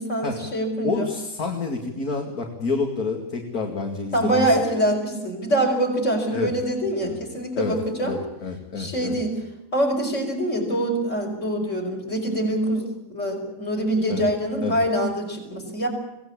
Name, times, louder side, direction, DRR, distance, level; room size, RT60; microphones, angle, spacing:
voice 1, 0.0-1.1 4.1-8.2 8.8-9.4 9.7-15.9, right 1 dB, 45° left, 1 dB, 5.7 m, -24 dB
voice 2, 0.8-4.5 6.3-6.5 7.0-7.2 7.5-7.8 8.0-9.2 14.1-14.2 14.6-14.8, left 4 dB, 60° left, 2 dB, 2.9 m, -28 dB
25.0 x 17.5 x 8.7 m, 0.94 s
omnidirectional pair, 1.7 m